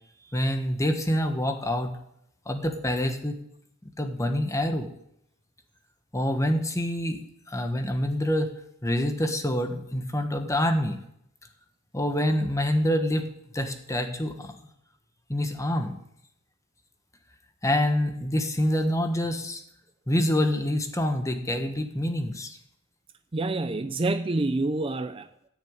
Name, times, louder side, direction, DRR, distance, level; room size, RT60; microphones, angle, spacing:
voice 1, 0.3-1.9 2.5-3.4 4.0-4.9 6.1-7.2 7.5-8.5 8.8-11.0 11.9-13.3 13.5-14.5 15.3-16.0 17.6-19.6 20.1-22.6, left 1 dB, 15° left, 6 dB, 1.3 m, -26 dB
voice 2, 23.3-25.5, right 2 dB, 25° right, 10 dB, 0.5 m, -27 dB
14.5 x 6.5 x 8.9 m, 0.77 s
head